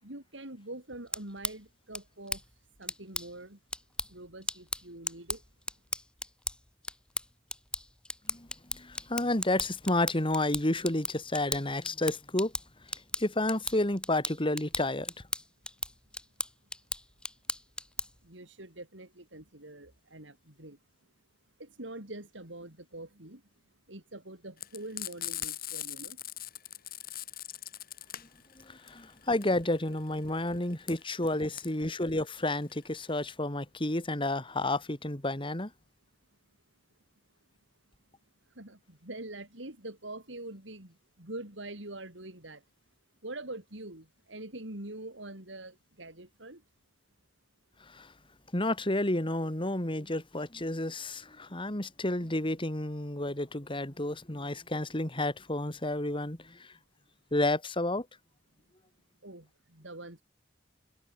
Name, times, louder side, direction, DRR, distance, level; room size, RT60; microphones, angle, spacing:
voice 1, 0.0-2.4 2.8-3.6 4.1-5.4 18.2-20.8 21.6-23.4 23.9-26.2 38.5-42.6 43.2-46.6 59.2-60.2, right 2 dB, 80° right, 5.4 m, -44 dB
sound 1, 0.9-18.3, left 2 dB, 5° left, 1.7 m, -39 dB
voice 2, 8.3-12.5 13.2-15.1 28.6-35.7 47.8-48.1 48.5-56.7 57.3-58.1, left 1 dB, 25° left, 2.9 m, -31 dB
Frying (food), 24.6-33.3, left 13 dB, 50° left, 7.2 m, -41 dB
head